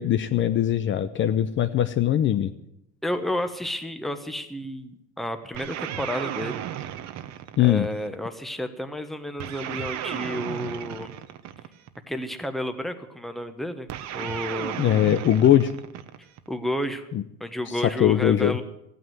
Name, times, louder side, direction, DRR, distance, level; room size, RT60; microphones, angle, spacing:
voice 1, 0.0-2.5 7.6-7.9 14.8-15.7 17.1-17.2 17.7-18.6, left 11 dB, 40° left, 10 dB, 0.7 m, -21 dB
voice 2, 3.0-6.6 7.6-11.1 12.1-13.9 14.1-14.8 16.5-17.1 17.4-18.6, left 1 dB, ahead, 7 dB, 1.1 m, -31 dB
sound 1, 5.5-8.2 9.4-12.0 13.9-16.5, right 11 dB, 60° right, 1.1 m, -34 dB
15.0 x 9.4 x 9.4 m, 0.80 s
cardioid pair, 155°, 31 cm